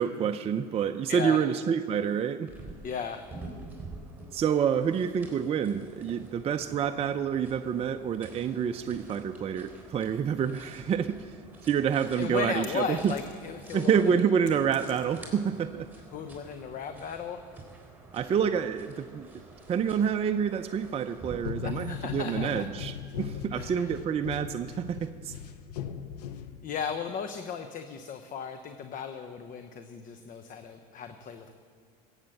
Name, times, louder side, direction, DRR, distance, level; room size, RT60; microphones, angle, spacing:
voice 1, 0.0-2.5 4.3-11.2 11.6-13.1 13.7-15.9 18.1-19.3 19.7-25.3, right 7 dB, 30° right, 7 dB, 0.5 m, -28 dB
voice 2, 1.1-1.4 2.8-3.2 12.2-14.2 16.1-17.4 21.6-22.7 23.5-23.9 26.6-31.5, left 6 dB, 40° left, 8 dB, 0.9 m, -36 dB
sound 1, 2.5-21.4, right 2 dB, 10° right, 3.9 m, -49 dB
sound 2, 12.6-13.6 14.0-15.5, left 7 dB, 65° left, 2.1 m, -51 dB
sound 3, 21.4-26.9, left 8 dB, 80° left, 0.8 m, -38 dB
15.5 x 8.1 x 7.8 m, 2.2 s
hypercardioid pair, 90°, 20 cm